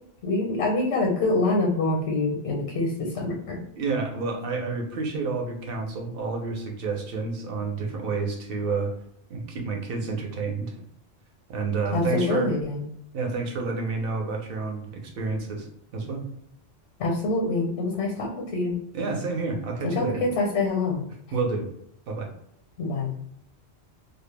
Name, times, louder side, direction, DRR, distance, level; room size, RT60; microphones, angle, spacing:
voice 1, 0.2-3.6 11.9-12.8 17.0-18.8 19.9-21.0 22.8-23.1, left 2 dB, 75° left, 0 dB, 0.9 m, -25 dB
voice 2, 3.8-8.9 9.3-10.7 11.5-12.5 13.1-15.7 15.9-16.2 18.9-20.2 21.3-21.6 22.1-22.3, right 4 dB, 60° right, 2 dB, 0.7 m, -29 dB
2.2 x 2.0 x 3.1 m, 0.74 s
omnidirectional pair, 1.2 m